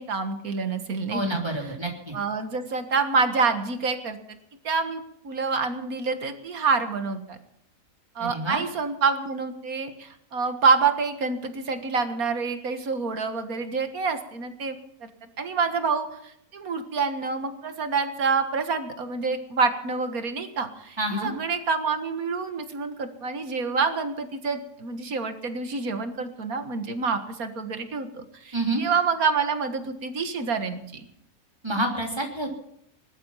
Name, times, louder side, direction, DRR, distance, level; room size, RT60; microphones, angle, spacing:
voice 1, 0.0-1.4 2.1-4.4 4.6-7.4 8.2-15.1 15.4-31.1, right 4 dB, 80° right, 8 dB, 2.1 m, -27 dB
voice 2, 1.1-2.1 8.2-8.6 21.0-21.3 28.5-28.8 31.6-32.5, right 1 dB, 20° right, 2 dB, 3.3 m, -28 dB
20.0 x 12.5 x 5.7 m, 0.75 s
omnidirectional pair, 1.5 m